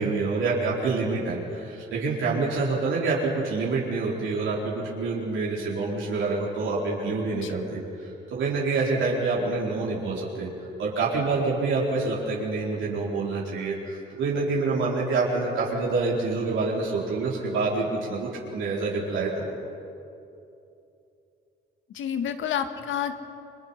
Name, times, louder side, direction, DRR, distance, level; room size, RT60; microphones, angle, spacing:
voice 1, 0.0-10.5 10.8-19.5, right 3 dB, 80° right, -5 dB, 4.4 m, -27 dB
voice 2, 21.9-23.1, left 8 dB, 80° left, 8 dB, 1.7 m, -29 dB
30.0 x 22.5 x 5.8 m, 2.7 s
cardioid pair, 90°, 20 cm